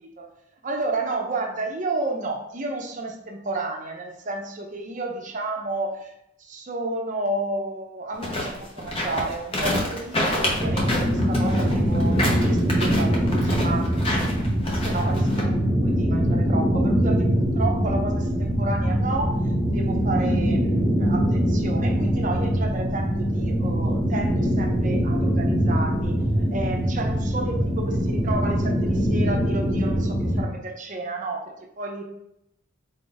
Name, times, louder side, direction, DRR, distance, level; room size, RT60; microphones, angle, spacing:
voice 1, 0.6-6.1 6.4-14.3 14.8-26.2 26.5-32.0, right 2 dB, 35° right, 2 dB, 0.6 m, -31 dB
sound 1, 8.1-15.4, left 1 dB, 25° left, 0.7 m, -27 dB
sound 2, 10.5-30.4, equal, ahead, 1.1 m, -23 dB
4.2 x 2.5 x 3.8 m, 0.81 s
head